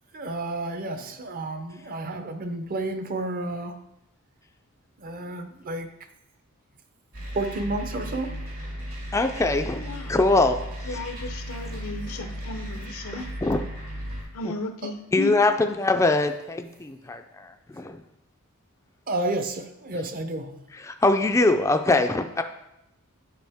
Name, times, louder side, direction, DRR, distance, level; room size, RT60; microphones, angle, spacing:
voice 1, 0.1-3.8 5.0-5.9 7.3-8.3 19.1-20.6, right 2 dB, 40° right, 0.6 m, -31 dB
sound 1, 7.1-14.2, equal, 80° right, 3.1 m, -35 dB
voice 2, 9.1-11.1 13.4-13.6 14.4-14.5 15.1-18.0 19.9-20.0 20.7-22.4, left 2 dB, 15° left, 0.3 m, -23 dB
voice 3, 9.7-10.2 10.9-13.3 14.3-15.3, left 3 dB, 85° left, 0.7 m, -34 dB
9.1 x 5.0 x 3.5 m
head